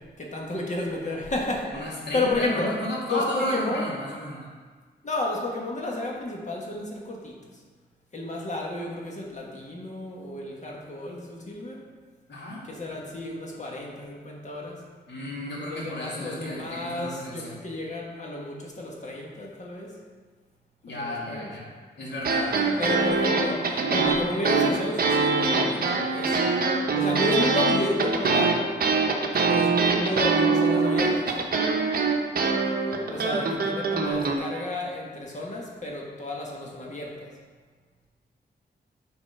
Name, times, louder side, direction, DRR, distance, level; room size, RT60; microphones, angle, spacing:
voice 1, 0.2-1.8 2.1-2.7 3.0-3.9 5.0-7.3 8.1-11.8 12.6-14.8 15.7-19.9 20.9-21.5 22.8-26.4 26.9-28.6 29.5-31.3 33.1-37.3, left 2 dB, 40° left, -2 dB, 1.6 m, -32 dB
voice 2, 1.6-4.5 12.3-12.6 15.1-17.6 20.8-21.7 22.0-22.9, left 1 dB, 80° left, -5 dB, 2.4 m, -33 dB
sound 1, 22.2-34.4, right 4 dB, 55° right, 0.9 m, -23 dB
8.7 x 4.3 x 5.5 m, 1.5 s
wide cardioid pair, 110°, 18 cm